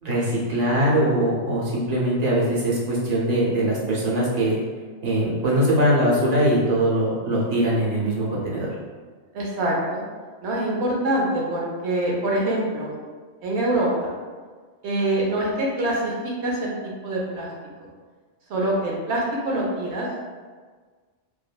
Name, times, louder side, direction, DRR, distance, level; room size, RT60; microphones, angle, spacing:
voice 1, 0.0-4.6 5.0-8.7, right 1 dB, 45° right, -5 dB, 0.7 m, -22 dB
voice 2, 9.3-10.0 10.4-12.9 13.4-14.1 14.8-17.5 17.8-17.9 18.5-20.1, right 1 dB, 80° right, -3 dB, 1.0 m, -25 dB
3.2 x 2.1 x 2.2 m, 1.5 s
omnidirectional pair, 1.1 m